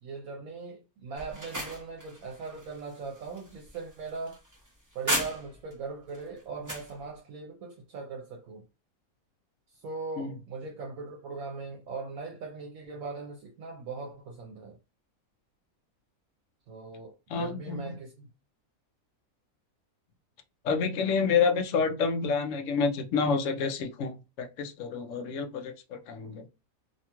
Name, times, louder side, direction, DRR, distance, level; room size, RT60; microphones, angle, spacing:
voice 1, 0.0-4.4 4.9-8.6 9.8-14.8 16.7-18.3, right 4 dB, 75° right, 1.0 m, -40 dB
sound 1, 1.1-5.7 6.1-6.9, right 1 dB, 20° right, 0.5 m, -36 dB
voice 2, 17.3-18.0 20.6-26.5, left 5 dB, 65° left, 0.8 m, -29 dB
2.8 x 2.3 x 2.8 m
omnidirectional pair, 1.5 m